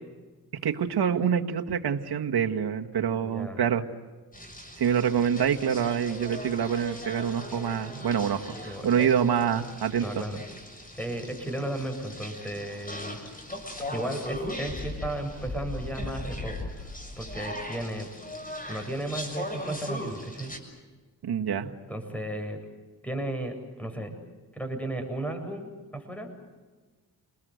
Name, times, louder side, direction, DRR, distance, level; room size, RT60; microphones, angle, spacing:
voice 1, 0.6-3.8 4.8-10.1 21.2-21.7, right 8 dB, 70° right, 4 dB, 1.8 m, -26 dB
voice 2, 3.2-3.6 8.5-9.1 10.0-10.4 11.0-13.2 13.9-16.9 17.2-18.1 18.7-20.5 21.9-22.6 23.0-24.1 24.5-26.3, right 1 dB, 5° left, 5 dB, 8.0 m, -34 dB
sound 1, 4.3-20.6, left 1 dB, 20° left, 6.8 m, -39 dB
29.5 x 21.0 x 8.2 m, 1.3 s
cardioid pair, 60°, 40 cm